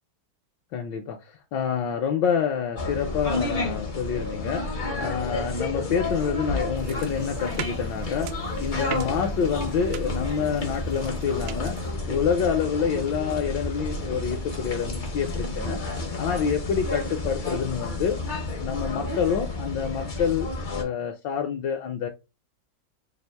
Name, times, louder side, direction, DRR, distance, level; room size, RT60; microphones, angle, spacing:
voice 1, 0.7-8.3 8.6-11.8 12.1-15.8 16.2-18.2 18.6-22.1, left 7 dB, 75° left, 1.2 m, -27 dB
sound 1, 2.7-20.8, left 2 dB, 55° left, 0.5 m, -31 dB
sound 2, 6.8-11.9, right 7 dB, 75° right, 1.1 m, -40 dB
3.5 x 2.4 x 4.4 m
omnidirectional pair, 2.1 m